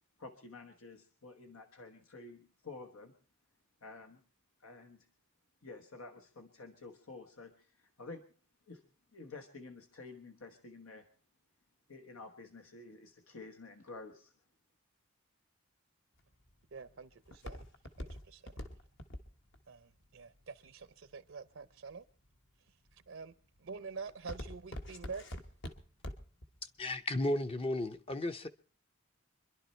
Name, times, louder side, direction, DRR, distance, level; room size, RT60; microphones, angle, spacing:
voice 1, 0.2-3.2 3.8-4.2 4.6-5.1 5.6-8.2 8.7-8.8 9.1-11.1 11.9-14.3, left 3 dB, 85° left, 1.2 m, -50 dB
Walk footsteps, 16.2-21.3 21.9-22.4 22.9-23.2 23.6-26.5 26.8-26.9, left 1 dB, 60° left, 1.4 m, -45 dB
voice 2, 16.7-17.6 18.0-18.5 19.7-22.0 22.9-23.3 23.6-25.3, right 5 dB, 65° right, 0.7 m, -47 dB
voice 3, 26.8-28.5, left 1 dB, 25° left, 0.7 m, -34 dB
25.5 x 11.0 x 4.4 m
head